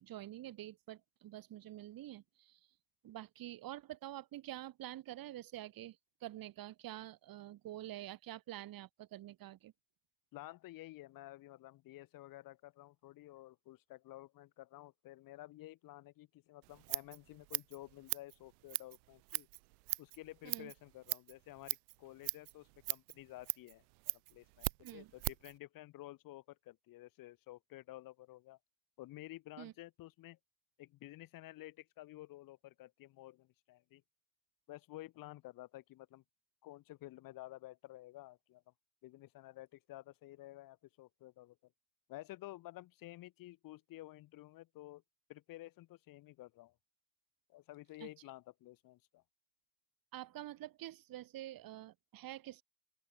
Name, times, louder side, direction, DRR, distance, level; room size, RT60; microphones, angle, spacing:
voice 1, 0.0-2.6 3.0-9.7 20.4-20.7 24.8-25.1 29.6-29.7 48.0-48.1 50.1-52.6, right 14 dB, 50° right, 2.2 m, -47 dB
voice 2, 10.3-19.5 20.0-28.6 29.0-30.4 30.8-34.0 34.7-36.2 36.6-38.6 39.0-41.6 42.1-45.0 45.3-46.7 47.5-49.2, left 16 dB, 50° left, 0.9 m, -52 dB
Scissors, 16.6-25.6, right 33 dB, 90° right, 0.6 m, -41 dB
open air
supercardioid pair, 110°, 44 cm